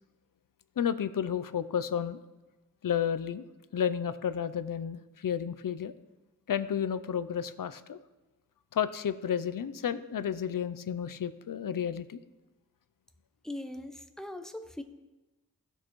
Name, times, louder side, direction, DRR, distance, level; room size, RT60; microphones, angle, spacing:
voice 1, 0.8-2.2 2.8-3.5 3.7-5.9 6.5-8.0 8.7-12.2, left 8 dB, 75° left, 13 dB, 0.5 m, -31 dB
voice 2, 13.4-14.8, left 1 dB, ahead, 7 dB, 0.8 m, -40 dB
16.5 x 6.4 x 3.1 m, 1.1 s
wide cardioid pair, 60°, 33 cm